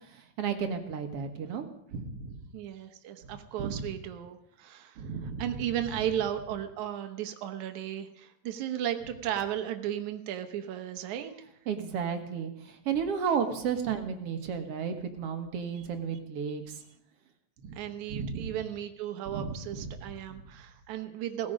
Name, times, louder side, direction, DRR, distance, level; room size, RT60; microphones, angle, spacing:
voice 1, 0.4-2.4 3.6-3.8 5.0-5.5 11.7-16.8 17.6-17.8 18.1-18.5 19.3-19.9, right 6 dB, 60° right, 6 dB, 2.3 m, -33 dB
voice 2, 2.5-11.3 17.8-21.5, right 11 dB, 80° right, 7 dB, 2.4 m, -35 dB
18.5 x 14.5 x 5.1 m, 0.75 s
omnidirectional pair, 3.3 m